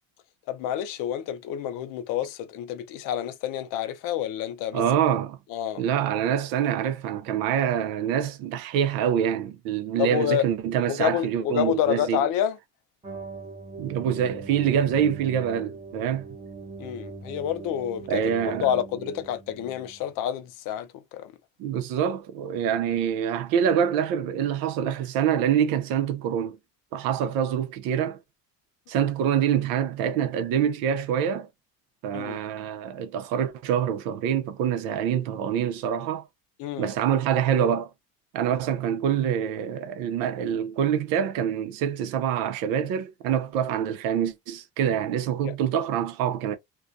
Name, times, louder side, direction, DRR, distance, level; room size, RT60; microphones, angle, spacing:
voice 1, 0.5-4.8 5.5-5.8 10.0-10.4 10.9-12.6 16.8-21.3 32.1-32.4 36.6-36.9 45.4-45.5, left 10 dB, 70° left, 0.5 m, -28 dB
voice 2, 4.7-5.4 5.8-12.3 13.8-16.3 18.1-18.7 21.6-26.6 26.9-28.2 28.9-31.5 32.0-36.2 36.8-37.9 38.3-46.6, right 9 dB, 85° right, 0.6 m, -25 dB
sound 1, 13.0-20.1, right 4 dB, 15° right, 0.7 m, -41 dB
2.3 x 2.2 x 2.5 m
cardioid pair, 160°, 34 cm